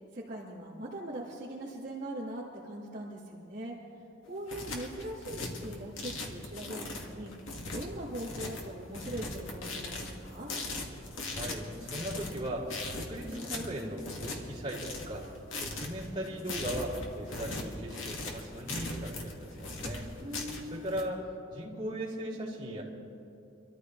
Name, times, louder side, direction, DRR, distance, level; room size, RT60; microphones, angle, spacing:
voice 1, 0.1-3.7 4.3-7.3 7.7-10.5 20.2-20.9, right 1 dB, 40° right, -8 dB, 2.0 m, -41 dB
sound 1, 4.2-21.0, left 2 dB, 85° left, 2.0 m, -39 dB
voice 2, 11.3-20.1 20.6-22.8, right 1 dB, 25° right, -8 dB, 3.5 m, -38 dB
26.0 x 13.5 x 3.3 m, 2.9 s
head